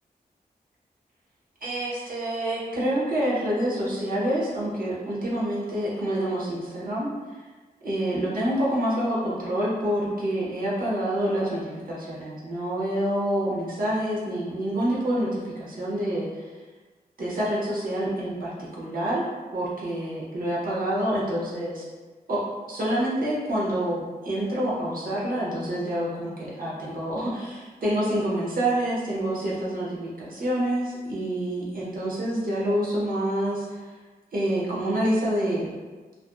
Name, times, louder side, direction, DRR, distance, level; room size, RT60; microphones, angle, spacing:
voice 1, 1.6-7.1 7.8-16.5 17.2-19.2 19.5-21.8 22.3-22.4 22.7-33.8 34.3-35.7, right 1 dB, 60° right, -6 dB, 0.8 m, -27 dB
2.5 x 2.4 x 2.3 m, 1.3 s
wide cardioid pair, 125°, 16 cm